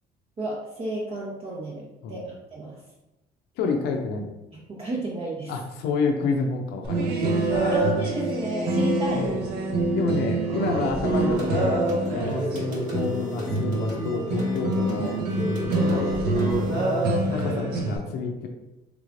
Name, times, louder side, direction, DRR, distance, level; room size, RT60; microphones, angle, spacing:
voice 1, 0.4-2.8 4.5-5.5 7.7-9.4 12.2-12.4, right 2 dB, 35° right, -4 dB, 0.7 m, -33 dB
voice 2, 3.6-4.4 5.5-7.8 9.1-9.4 9.9-11.8 12.1-15.2 15.8-16.7 17.3-18.5, left 4 dB, 75° left, 3 dB, 0.5 m, -29 dB
sound 1, 6.8-18.0, right 2 dB, 70° right, 0.8 m, -25 dB
sound 2, 11.1-16.5, equal, 50° right, 1.1 m, -35 dB
sound 3, 12.5-17.4, left 2 dB, ahead, 0.7 m, -44 dB
3.3 x 3.1 x 2.5 m, 0.99 s
cardioid pair, 110°, 17 cm